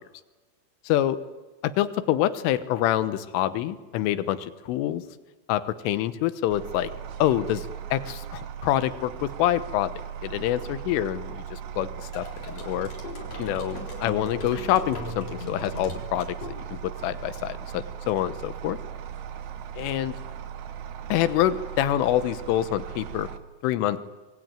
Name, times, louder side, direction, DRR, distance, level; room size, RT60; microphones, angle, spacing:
voice 1, 0.9-1.2 1.6-5.0 5.5-6.9 7.2-9.9 10.2-12.9 13.4-16.3 16.7-18.8 19.8-20.2 21.1-23.3 23.6-24.0, left 12 dB, 85° left, 13 dB, 3.7 m, -26 dB
sound 1, 6.5-23.4, right 9 dB, 85° right, 3.7 m, -38 dB
sound 2, 12.1-17.0, left 2 dB, 35° left, 4.5 m, -40 dB
26.0 x 22.5 x 9.1 m, 1.2 s
omnidirectional pair, 5.6 m